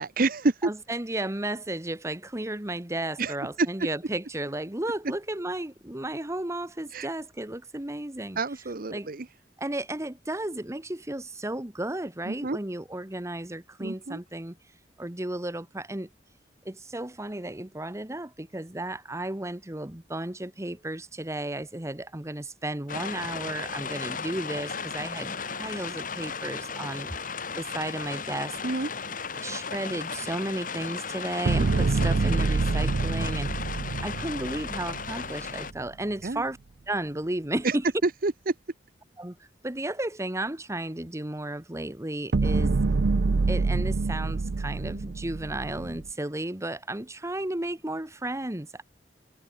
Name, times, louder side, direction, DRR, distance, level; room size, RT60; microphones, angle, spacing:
voice 1, 0.0-0.7 3.2-3.7 6.9-7.1 8.4-9.3 12.3-12.6 13.8-14.2 28.6-28.9 36.2-36.4 37.6-37.8 38.0-38.5, right 3 dB, 55° right, 0.9 m, -28 dB
voice 2, 0.6-8.4 8.9-9.1 9.6-14.6 15.0-16.1 16.6-27.1 27.5-28.6 29.3-33.5 34.0-36.6 36.9-37.8 39.2-39.4 39.6-42.8 43.5-48.8, right 1 dB, 15° right, 1.3 m, -33 dB
sound 1, 22.9-35.7, left 5 dB, 50° left, 3.4 m, -35 dB
sound 2, 31.5-35.7 42.3-46.1, right 3 dB, 75° right, 0.6 m, -26 dB
head